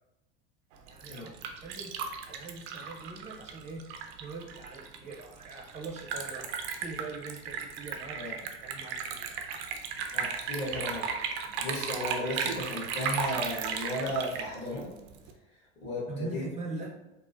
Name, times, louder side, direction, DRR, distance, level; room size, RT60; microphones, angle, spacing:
Liquid, 0.7-15.3, right 6 dB, 70° right, 0.5 m, -36 dB
voice 1, 0.9-1.3 1.6-8.4 8.6-9.4 16.1-16.9, right 3 dB, 20° right, -1 dB, 0.7 m, -42 dB
voice 2, 10.1-11.1 11.6-14.9 15.8-16.4, left 1 dB, 30° left, -7 dB, 1.5 m, -34 dB
3.6 x 2.1 x 2.5 m, 0.96 s
hypercardioid pair, 100°, 34 cm